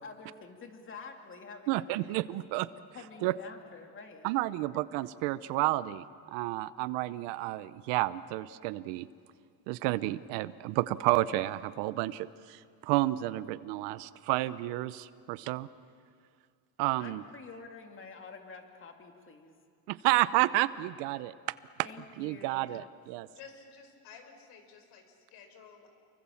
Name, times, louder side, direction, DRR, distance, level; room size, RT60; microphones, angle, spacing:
voice 1, 0.0-2.4 2.9-4.3 17.0-19.5 21.8-22.8, left 4 dB, 30° left, 4 dB, 2.7 m, -48 dB
voice 2, 1.7-2.7 3.2-3.3 4.2-9.1 9.7-15.7 16.8-17.2 19.9-21.3 22.2-23.3, right 17 dB, 80° right, 16 dB, 0.9 m, -31 dB
voice 3, 23.3-25.9, left 6 dB, 70° left, 6 dB, 4.9 m, -52 dB
29.5 x 23.0 x 7.2 m, 2.2 s
cardioid pair, 125°, 41 cm